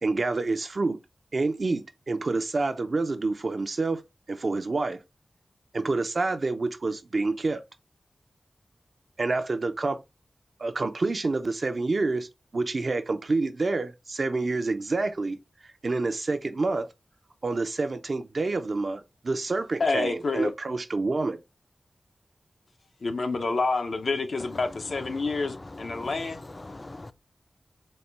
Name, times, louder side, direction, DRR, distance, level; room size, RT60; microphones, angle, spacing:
voice 1, 0.0-1.0 1.3-4.0 4.3-5.0 5.7-7.6 9.2-10.0 10.6-15.4 15.8-16.9 17.4-21.4, right 3 dB, 60° right, 0.5 m, -28 dB
voice 2, 19.8-20.5 23.0-26.4, left 3 dB, 80° left, 0.6 m, -28 dB
voice 3, 24.4-27.1, left 2 dB, 35° left, 0.4 m, -42 dB
4.2 x 2.2 x 3.2 m
wide cardioid pair, 60°, 0 cm